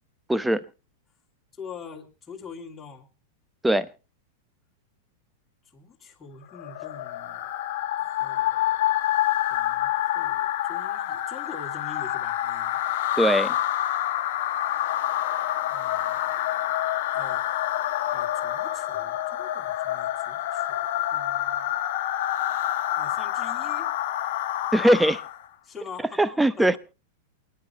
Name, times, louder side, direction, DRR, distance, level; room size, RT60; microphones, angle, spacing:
voice 1, 0.3-0.6 3.6-3.9 13.2-13.5 24.7-25.2 26.2-26.8, right 1 dB, 5° right, 0.9 m, -20 dB
voice 2, 1.5-3.1 5.7-7.5 8.0-8.8 9.5-12.8 15.7-16.4 17.1-17.5 18.1-21.8 23.0-23.9 25.6-26.2 26.6-26.7, left 6 dB, 15° left, 2.7 m, -44 dB
sound 1, 6.5-25.4, left 13 dB, 55° left, 1.4 m, -27 dB
28.5 x 10.0 x 3.1 m
figure-of-eight pair, 95°, 0 cm